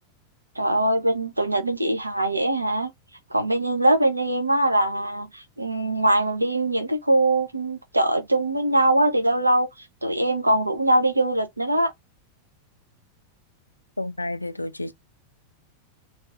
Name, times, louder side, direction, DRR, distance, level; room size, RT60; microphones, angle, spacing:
voice 1, 0.6-2.9 3.3-9.7 10.0-11.9, right 1 dB, 85° right, 0.5 m, -22 dB
voice 2, 14.0-14.9, left 2 dB, 85° left, 0.3 m, -30 dB
2.3 x 2.3 x 2.5 m
figure-of-eight pair, 90°, 0 cm